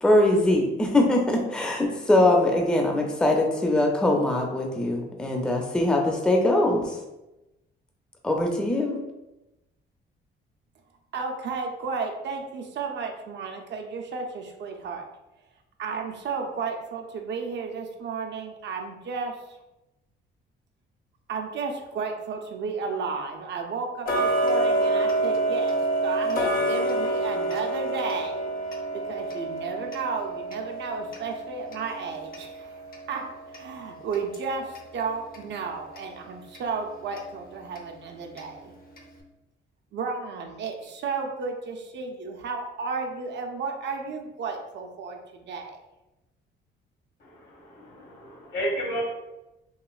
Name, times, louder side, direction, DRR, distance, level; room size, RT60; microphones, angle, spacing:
voice 1, 0.0-7.0 8.2-9.0, left 1 dB, 5° left, 1 dB, 0.4 m, -22 dB
voice 2, 11.1-15.0 15.8-19.4 21.3-28.4 28.9-38.7 39.9-45.8, right 4 dB, 60° right, 3 dB, 0.5 m, -33 dB
Tick-tock, 24.1-34.9 35.3-35.4 36.0-36.1 36.5-36.6 37.2-37.3 37.8-37.9 38.4-38.5 39.0-39.1, right 1 dB, 50° left, 0.6 m, -28 dB
voice 3, 47.2-49.0, equal, 65° left, -1 dB, 1.1 m, -32 dB
3.0 x 2.8 x 2.3 m, 0.97 s
cardioid pair, 90°, 20 cm